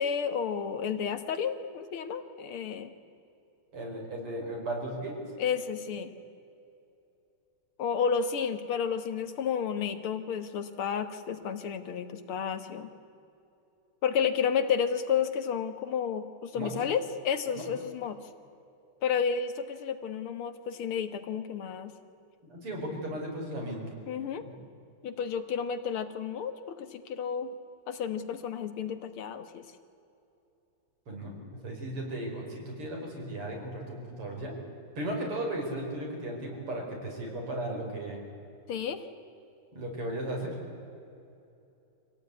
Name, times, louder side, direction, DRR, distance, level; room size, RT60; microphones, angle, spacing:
voice 1, 0.0-2.9 5.4-6.1 7.8-12.9 14.0-18.2 19.0-21.9 24.1-24.4 25.0-27.5 27.9-29.7 38.7-39.0, left 7 dB, 75° left, 9 dB, 2.2 m, -31 dB
voice 2, 3.7-5.2 16.5-16.7 17.5-17.7 22.4-23.8 24.4-24.5 31.1-31.3 31.6-34.5 35.0-38.2 39.7-40.6, right 1 dB, 80° right, 0 dB, 5.7 m, -36 dB
25.5 x 17.5 x 9.6 m, 2.7 s
omnidirectional pair, 2.4 m